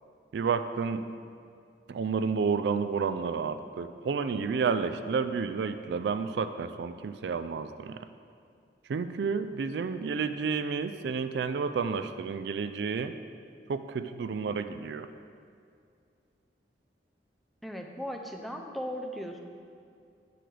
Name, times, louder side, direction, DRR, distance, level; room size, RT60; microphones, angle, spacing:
voice 1, 0.3-1.0 1.9-8.0 8.9-13.1 13.7-15.1, right 5 dB, 75° right, 10 dB, 0.3 m, -30 dB
voice 2, 17.6-19.4, equal, ahead, 1 dB, 0.5 m, -37 dB
9.2 x 7.7 x 3.4 m, 2.4 s
head